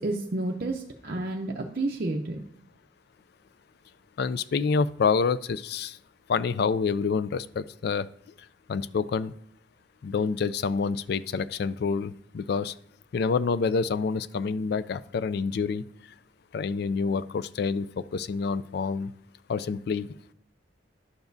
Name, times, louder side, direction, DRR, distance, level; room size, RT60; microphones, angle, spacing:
voice 1, 0.0-2.4, right 2 dB, 50° right, 1 dB, 0.6 m, -30 dB
voice 2, 4.2-6.0 6.3-8.1 8.7-9.3 10.0-12.7 13.1-15.8 16.5-19.1 19.5-20.1, left 5 dB, 55° left, 17 dB, 0.3 m, -27 dB
11.5 x 7.0 x 2.6 m, 0.68 s
head